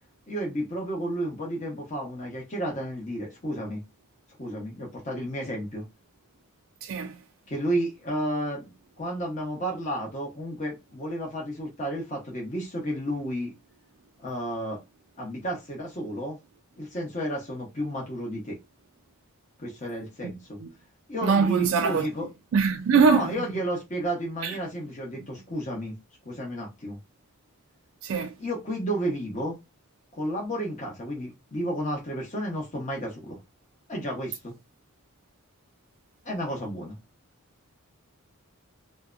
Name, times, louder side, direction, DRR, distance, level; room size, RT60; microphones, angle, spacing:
voice 1, 0.3-3.8 4.4-5.8 7.5-13.5 14.2-14.8 15.2-16.4 16.8-18.6 19.6-20.6 21.1-22.3 23.0-25.9 26.2-27.0 28.4-29.6 30.1-33.4 33.9-34.5 36.2-37.0, right 1 dB, 35° left, 0.8 m, -32 dB
voice 2, 6.8-7.1 20.6-20.7 21.2-22.1 22.5-23.5 24.4-24.6 28.0-28.3, right 5 dB, 65° right, 0.3 m, -22 dB
2.7 x 2.1 x 2.4 m
head